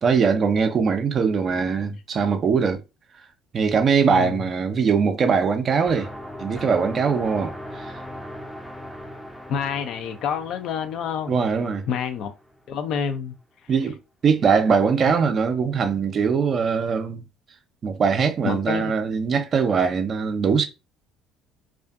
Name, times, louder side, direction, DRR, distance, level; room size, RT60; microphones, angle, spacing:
voice 1, 0.0-2.8 3.5-6.1 6.4-7.9 11.3-11.8 13.7-17.2 17.8-20.7, right 5 dB, 40° right, 0.5 m, -21 dB
voice 2, 4.1-4.4 9.5-11.4 11.9-12.3 12.7-13.3 18.4-18.9, left 7 dB, 55° left, 0.4 m, -28 dB
sound 1, 5.9-12.6, equal, 5° left, 0.5 m, -39 dB
2.4 x 2.4 x 2.3 m
figure-of-eight pair, 55°, 0 cm